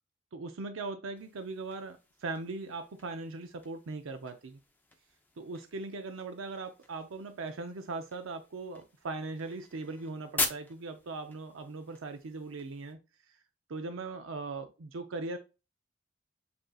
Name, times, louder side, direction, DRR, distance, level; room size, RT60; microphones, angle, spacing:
voice 1, 0.3-4.6 5.4-13.0 13.3-13.4 13.7-15.4, right 3 dB, 75° right, 0.5 m, -39 dB
sound 1, 1.1-12.9, left 3 dB, 10° left, 0.5 m, -43 dB
7.6 x 2.7 x 2.3 m
head